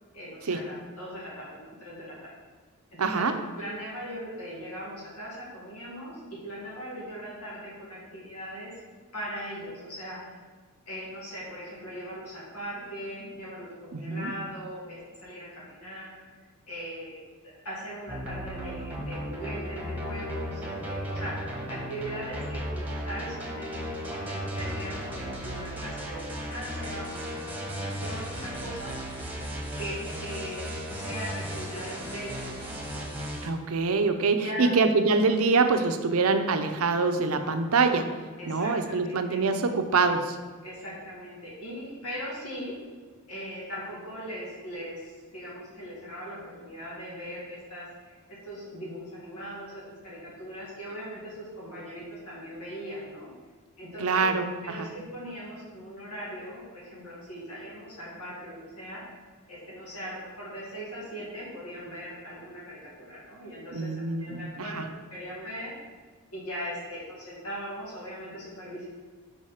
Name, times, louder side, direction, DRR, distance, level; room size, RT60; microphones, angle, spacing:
voice 1, 0.1-2.2 2.9-3.3 3.6-8.7 9.1-10.4 10.9-17.2 17.6-28.9 29.8-30.0 30.2-33.1 34.4-34.7 38.4-39.4 40.6-42.7 43.3-53.3 53.8-54.2 54.6-59.0 59.5-65.7 66.3-68.9, equal, 85° left, -6 dB, 2.0 m, -40 dB
voice 2, 3.0-3.4 13.9-14.3 33.4-38.2 38.5-40.4 54.0-54.9 63.7-64.8, right 4 dB, 70° right, 7 dB, 0.6 m, -25 dB
sound 1, 18.1-33.5, equal, 10° right, 1.1 m, -35 dB
5.2 x 4.8 x 5.7 m, 1.4 s
head